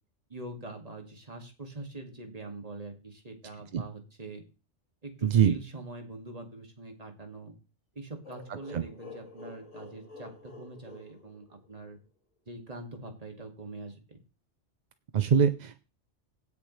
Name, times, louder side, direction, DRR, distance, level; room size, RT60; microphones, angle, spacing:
voice 1, 0.3-4.4 5.0-7.6 7.9-12.0 12.5-14.2, right 2 dB, 30° right, 4 dB, 2.2 m, -43 dB
voice 2, 5.2-5.5 8.7-8.8 15.1-15.8, right 8 dB, 50° right, 11 dB, 0.6 m, -23 dB
sound 1, 8.2-12.0, left 3 dB, 85° left, 2.6 m, -49 dB
16.5 x 6.7 x 3.2 m, 0.32 s
omnidirectional pair, 1.2 m